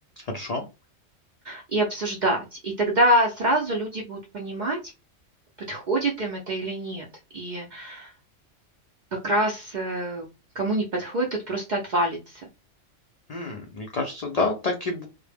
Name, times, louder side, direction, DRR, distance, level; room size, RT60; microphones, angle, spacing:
voice 1, 0.2-0.6 13.3-15.1, left 3 dB, 80° left, 1 dB, 0.3 m, -28 dB
voice 2, 1.4-4.8 5.7-7.1 7.3-8.1 9.1-10.3 10.5-12.4, right 1 dB, 60° right, 0 dB, 0.5 m, -26 dB
2.1 x 2.0 x 3.2 m, 0.27 s
omnidirectional pair, 1.3 m